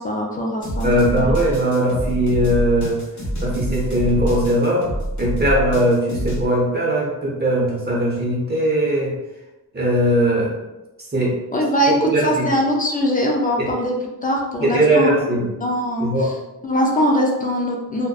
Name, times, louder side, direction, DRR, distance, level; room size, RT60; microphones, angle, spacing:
voice 1, 0.0-0.9 1.2-1.3 11.5-11.9 12.2-13.9 14.2-15.1 15.6-16.3 16.6-18.1, equal, 25° left, 0 dB, 0.4 m, -21 dB
sound 1, 0.6-6.5, right 1 dB, 45° left, 1.0 m, -26 dB
voice 2, 0.8-3.0 3.4-4.9 5.2-9.1 9.7-10.5 11.1-11.4 11.9-12.5 13.6-13.7 14.6-15.5 16.0-16.3, right 1 dB, 25° right, -5 dB, 0.8 m, -19 dB
2.5 x 2.1 x 2.3 m, 1.0 s
cardioid pair, 110°, 38 cm